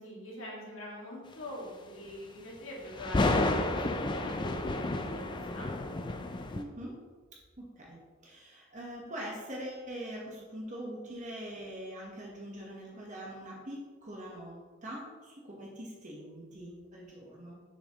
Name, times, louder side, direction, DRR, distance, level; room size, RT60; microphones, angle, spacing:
voice 1, 0.0-5.2 5.5-6.0, left 1 dB, 60° left, -4 dB, 2.2 m, -44 dB
sound 1, 2.9-6.6, left 2 dB, 20° left, 0.4 m, -31 dB
voice 2, 6.5-7.0 7.6-17.6, right 1 dB, 35° right, -2 dB, 1.2 m, -43 dB
7.0 x 7.0 x 3.0 m, 1.4 s
head